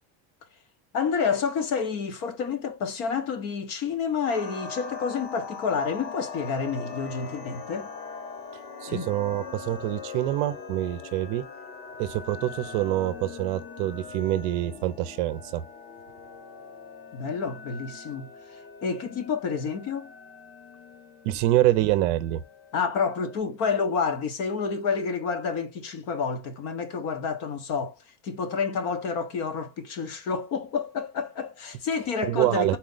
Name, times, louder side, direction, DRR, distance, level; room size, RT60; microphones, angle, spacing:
voice 1, 0.9-7.9 8.9-9.1 17.1-18.3 18.8-20.1 22.7-27.9 28.2-32.8, left 5 dB, 40° left, 1.0 m, -29 dB
sound 1, 4.2-23.4, left 5 dB, 80° left, 1.4 m, -42 dB
voice 2, 8.8-11.4 12.0-15.6 21.2-22.4 32.2-32.8, right 14 dB, 50° right, 0.7 m, -26 dB
4.3 x 3.1 x 3.9 m
cardioid pair, 175°, 36 cm